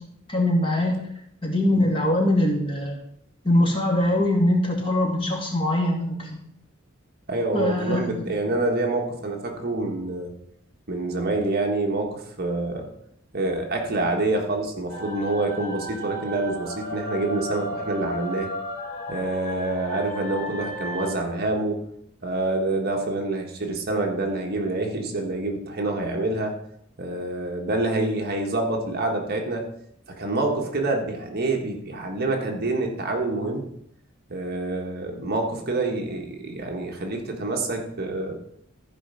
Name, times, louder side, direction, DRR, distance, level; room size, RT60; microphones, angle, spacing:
voice 1, 0.3-1.0 1.4-3.0 3.4-6.4 7.5-8.3, left 1 dB, 25° left, -1 dB, 2.5 m, -22 dB
voice 2, 7.3-10.3 10.9-12.9 13.3-18.5 19.1-21.8 22.2-26.6 27.0-29.7 30.1-33.6 34.3-38.4, right 2 dB, 50° right, 2 dB, 1.4 m, -27 dB
sound 1, 14.9-21.2, left 1 dB, 40° left, 4.0 m, -34 dB
14.0 x 5.1 x 5.6 m, 0.73 s
head